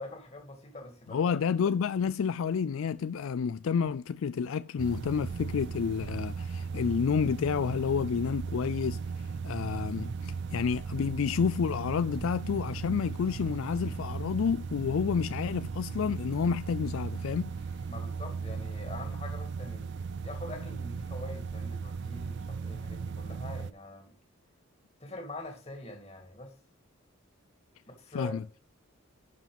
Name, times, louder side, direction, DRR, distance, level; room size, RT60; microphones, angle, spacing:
voice 1, 0.0-1.4 17.9-19.9 20.2-24.1 25.0-26.5 27.9-28.3, left 1 dB, 30° left, 2.5 m, -44 dB
voice 2, 1.1-9.0 9.4-17.5 28.1-28.4, left 6 dB, 70° left, 0.4 m, -30 dB
sound 1, 4.8-23.7, right 5 dB, 55° right, 0.4 m, -37 dB
11.5 x 4.9 x 5.2 m
head